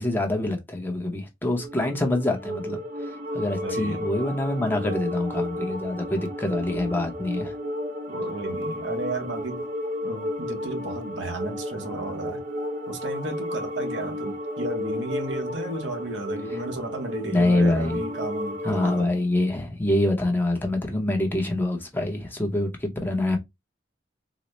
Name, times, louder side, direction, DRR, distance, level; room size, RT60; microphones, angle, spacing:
voice 1, 0.0-7.5 17.3-18.0 18.6-23.4, left 1 dB, 10° left, 0.7 m, -25 dB
sound 1, 1.5-19.1, left 1 dB, 45° right, 0.5 m, -32 dB
voice 2, 3.6-4.1 8.1-9.7 10.0-12.4 12.9-19.1, right 2 dB, 75° right, 0.9 m, -33 dB
3.9 x 2.0 x 3.1 m
head